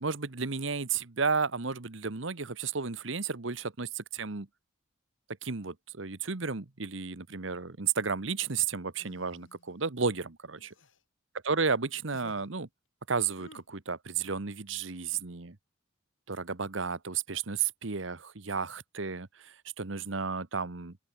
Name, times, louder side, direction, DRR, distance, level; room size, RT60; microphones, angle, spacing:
voice 1, 0.0-4.5 5.4-10.7 11.4-12.7 13.1-15.6 16.3-21.0, right 5 dB, 75° right, 1.3 m, -33 dB
sound 1, 9.0-9.7 10.6-11.0 11.6-11.8 12.1-12.5 13.4-13.6, left 2 dB, 70° left, 3.6 m, -53 dB
open air
head